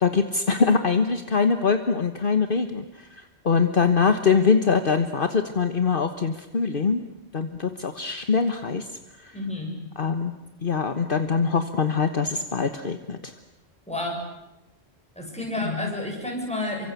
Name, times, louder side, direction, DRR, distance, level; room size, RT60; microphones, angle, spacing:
voice 1, 0.0-7.0 7.3-8.9 9.2-9.4 10.0-10.3 10.6-13.3 15.6-15.9, left 5 dB, 55° left, 8 dB, 1.4 m, -23 dB
voice 2, 9.3-9.8 13.9-14.2 15.2-16.9, left 1 dB, 5° left, 0 dB, 7.5 m, -30 dB
28.5 x 24.5 x 8.3 m, 0.94 s
omnidirectional pair, 1.1 m